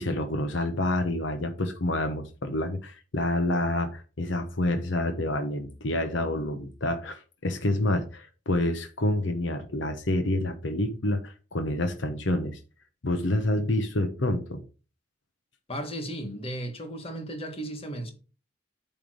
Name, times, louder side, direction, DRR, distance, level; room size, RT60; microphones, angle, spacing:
voice 1, 0.0-12.6 13.0-14.6, left 1 dB, 75° left, 1.0 m, -28 dB
voice 2, 15.7-18.1, right 1 dB, 30° left, 1.6 m, -35 dB
8.9 x 3.5 x 6.2 m
head